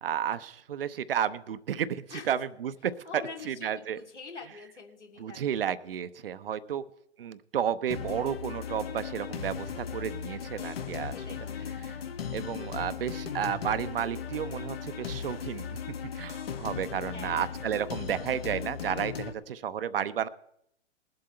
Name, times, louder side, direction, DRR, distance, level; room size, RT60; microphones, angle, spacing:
voice 1, 0.0-4.0 5.2-6.8 7.2-11.2 12.3-20.3, right 9 dB, 50° right, 14 dB, 0.7 m, -32 dB
voice 2, 3.1-6.0 6.4-6.7 10.3-10.8 11.1-11.7 17.1-17.6 17.9-18.0, left 4 dB, 75° left, 1 dB, 2.9 m, -46 dB
sound 1, 7.9-19.3, left 7 dB, 55° left, 1.3 m, -37 dB
20.5 x 7.8 x 4.3 m, 0.73 s
figure-of-eight pair, 120°, 36 cm